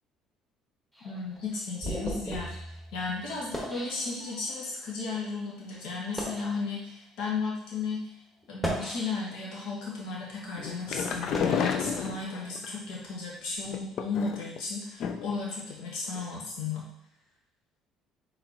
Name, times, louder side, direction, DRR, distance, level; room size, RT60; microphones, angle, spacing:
sound 1, 0.9-4.7 5.3-5.5 6.0-6.6 7.3-7.5 8.4-9.5 10.0-12.6, equal, 5° left, 1.4 m, -38 dB
voice 1, 1.0-8.1 8.5-16.9, left 4 dB, 75° left, -4 dB, 1.5 m, -34 dB
sound 2, 10.6-12.7 13.7-14.6 15.0-15.4 15.7-15.8 16.1-16.2, left 7 dB, 60° left, 0.4 m, -31 dB
4.3 x 3.9 x 2.9 m, 0.83 s
supercardioid pair, 80°, 0 cm